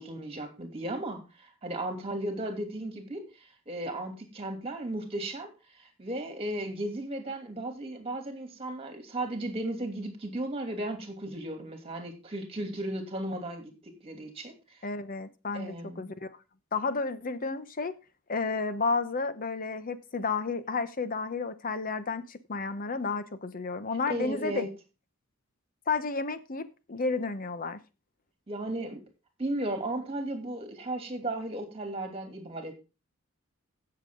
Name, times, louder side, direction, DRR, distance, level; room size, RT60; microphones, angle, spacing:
voice 1, 0.0-5.5 5.7-14.8 15.5-16.1 24.1-24.7 28.5-29.0 29.4-32.7, right 1 dB, 30° right, 5 dB, 2.8 m, -35 dB
voice 2, 14.8-16.3 16.7-18.0 18.3-24.7 25.9-27.8, left 4 dB, 40° left, 12 dB, 0.9 m, -32 dB
16.0 x 6.8 x 3.8 m, 0.30 s
head